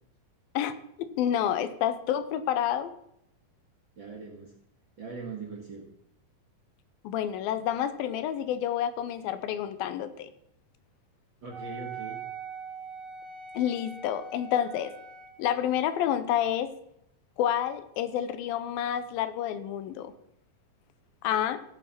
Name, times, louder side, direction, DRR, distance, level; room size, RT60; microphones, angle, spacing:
voice 1, 0.5-2.9 7.0-10.3 13.5-14.9 15.4-16.7 17.4-20.1 21.2-21.6, left 10 dB, 80° left, 12 dB, 2.5 m, -29 dB
voice 2, 4.0-4.5 5.0-5.9 11.4-12.2, right 4 dB, 45° right, 0 dB, 1.6 m, -40 dB
Wind instrument woodwind instrument, 11.5-15.4, right 5 dB, 65° right, 4.3 m, -42 dB
16.0 x 7.0 x 5.9 m, 0.76 s
omnidirectional pair, 4.3 m